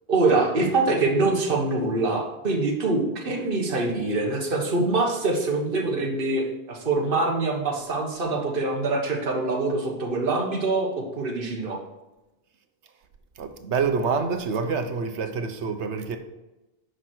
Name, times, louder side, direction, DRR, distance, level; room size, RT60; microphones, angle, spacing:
voice 1, 0.1-11.8, right 3 dB, 50° right, 1.6 m, -24 dB
voice 2, 13.4-16.2, right 5 dB, 75° right, 1.2 m, -27 dB
9.5 x 6.3 x 4.5 m
omnidirectional pair, 1.2 m